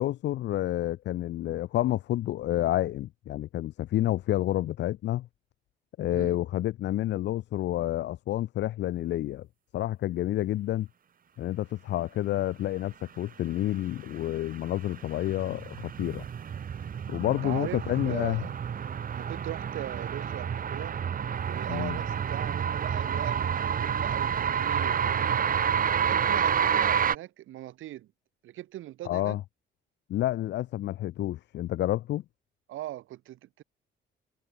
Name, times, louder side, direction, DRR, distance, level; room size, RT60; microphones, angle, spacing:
voice 1, 0.0-5.3 6.0-9.5 9.7-10.9 11.4-16.2 17.1-18.4 21.7-22.0 29.0-29.4 30.1-32.2, left 14 dB, 65° left, 0.4 m, -29 dB
sound 1, 14.4-27.1, right 8 dB, 45° right, 1.1 m, -29 dB
voice 2, 17.4-18.5 19.1-21.0 21.4-25.6 25.9-28.1 28.4-29.4 32.7-33.6, right 14 dB, 85° right, 6.0 m, -40 dB
cardioid pair, 90°, 20 cm